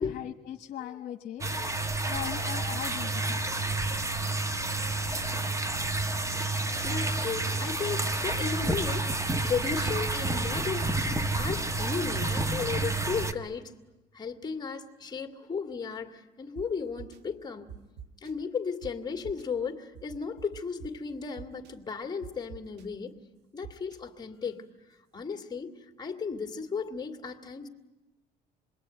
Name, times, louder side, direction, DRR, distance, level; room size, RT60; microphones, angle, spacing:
voice 1, 0.0-3.4, left 11 dB, 60° left, 5 dB, 1.2 m, -39 dB
sound 1, 1.4-13.3, right 2 dB, 20° right, 1.3 m, -30 dB
voice 2, 6.1-11.0 11.3-13.7 14.1-17.8 18.2-23.2 23.5-27.7, left 5 dB, 25° left, 6 dB, 2.3 m, -35 dB
sound 2, 16.6-16.7 17.0-17.2 17.7-18.3 18.8-18.9 19.2-19.4 19.9-20.9 21.4-21.7 22.2-22.8 23.6-24.0, right 7 dB, 80° right, 1.7 m, -44 dB
27.0 x 21.5 x 9.1 m, 1.1 s
cardioid pair, 110°, 17 cm